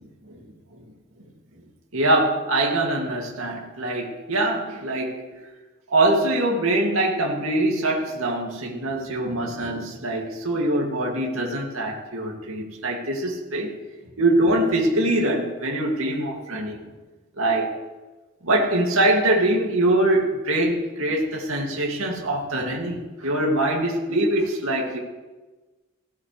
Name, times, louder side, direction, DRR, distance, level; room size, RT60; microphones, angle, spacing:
voice 1, 1.9-5.3 5.9-13.7 14.2-16.8 17.4-17.7 18.4-25.0, right 1 dB, 70° right, -2 dB, 2.3 m, -23 dB
16.5 x 16.5 x 3.3 m, 1.2 s
head